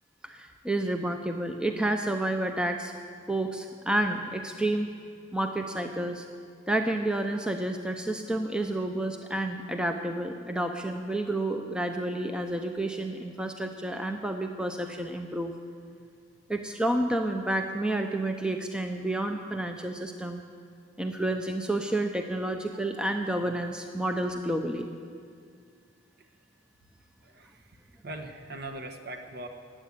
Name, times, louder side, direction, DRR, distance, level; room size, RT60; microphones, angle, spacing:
voice 1, 0.2-2.9 3.3-4.9 5.3-6.3 6.7-15.5 16.5-20.4 21.0-24.9, right 1 dB, 5° right, 4 dB, 0.6 m, -30 dB
voice 2, 28.0-29.5, right 1 dB, 50° right, 3 dB, 1.3 m, -40 dB
15.5 x 9.6 x 8.5 m, 2.2 s
head